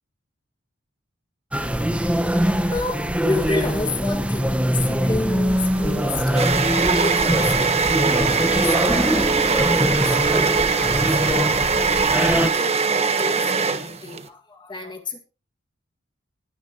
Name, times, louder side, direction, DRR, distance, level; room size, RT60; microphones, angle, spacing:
sound 1, 1.5-12.5, equal, 5° right, 1.2 m, -23 dB
voice 1, 2.7-15.2, left 2 dB, 25° left, 4 dB, 2.0 m, -31 dB
sound 2, 5.5-14.2, right 5 dB, 30° right, 1.4 m, -21 dB
20.0 x 10.5 x 3.0 m, 0.32 s
head